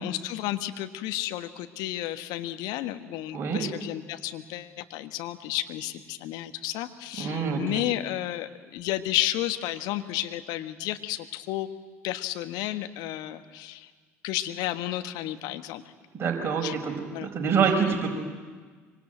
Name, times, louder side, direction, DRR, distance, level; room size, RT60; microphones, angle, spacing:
voice 1, 0.0-11.7 12.0-13.9 14.2-15.8 16.5-16.7 17.1-17.3, left 14 dB, 60° left, 9 dB, 1.4 m, -32 dB
voice 2, 7.2-7.8 16.1-18.1, right 6 dB, 30° right, 0 dB, 5.1 m, -26 dB
25.0 x 25.0 x 9.2 m, 1.5 s
figure-of-eight pair, 60°, 8 cm